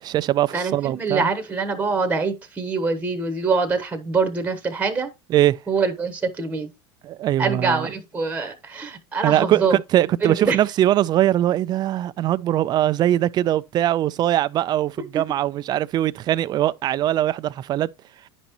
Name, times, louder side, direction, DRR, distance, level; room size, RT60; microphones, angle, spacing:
voice 1, 0.0-1.3 5.3-5.6 7.0-7.9 9.2-17.9, right 13 dB, 30° right, 0.4 m, -21 dB
voice 2, 0.5-5.1 5.7-6.7 7.4-9.8 10.2-10.6, right 4 dB, 10° right, 1.1 m, -24 dB
10.0 x 5.3 x 2.9 m
supercardioid pair, 120°, 14 cm